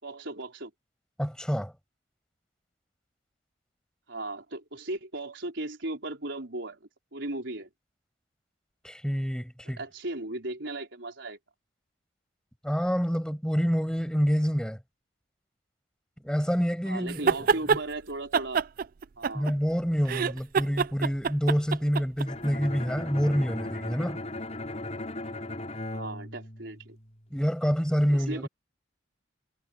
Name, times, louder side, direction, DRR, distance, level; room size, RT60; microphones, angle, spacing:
voice 1, 0.0-0.7 4.1-6.8 7.1-7.7 9.6-11.4 16.8-18.6 19.2-19.5 25.9-27.0 28.1-28.5, right 2 dB, 70° right, 4.3 m, -36 dB
voice 2, 1.2-1.7 8.8-9.8 12.6-14.8 16.2-17.8 19.3-24.2 27.3-28.5, equal, 5° left, 6.2 m, -27 dB
sound 1, 17.1-17.8 18.3-19.7 20.0-22.3, right 6 dB, 45° right, 0.4 m, -26 dB
Bowed string instrument, 22.3-27.2, left 1 dB, 35° left, 5.2 m, -37 dB
head